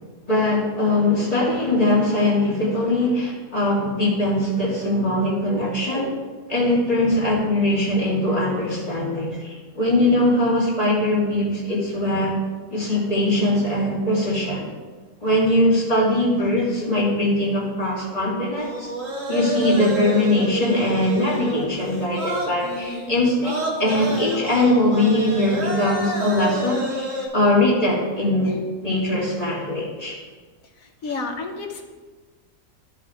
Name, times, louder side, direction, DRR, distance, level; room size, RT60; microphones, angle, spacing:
voice 1, 0.3-6.2 6.5-12.4 12.7-14.7 15.2-18.9 19.3-30.2 31.1-31.2, left 1 dB, 25° left, -7 dB, 2.5 m, -21 dB
sound 1, 18.6-27.3, right 1 dB, 65° right, 2.0 m, -29 dB
voice 2, 31.0-31.8, left 3 dB, 70° left, 3 dB, 1.5 m, -30 dB
14.5 x 4.9 x 3.5 m, 1.4 s
omnidirectional pair, 1.5 m